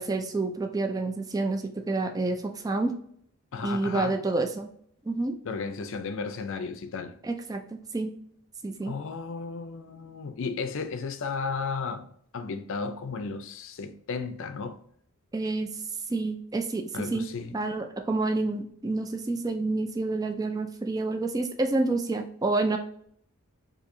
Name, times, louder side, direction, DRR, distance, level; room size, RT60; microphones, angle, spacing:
voice 1, 0.0-2.9 3.6-4.7 5.1-5.4 7.2-8.1 8.6-8.9 15.3-15.7 16.1-17.2 17.5-22.8, right 2 dB, 15° right, 0.3 m, -28 dB
voice 2, 3.5-4.2 5.4-7.1 8.8-12.1 12.3-14.8 16.9-17.5, left 4 dB, 60° left, 0.5 m, -34 dB
4.3 x 2.7 x 2.6 m
head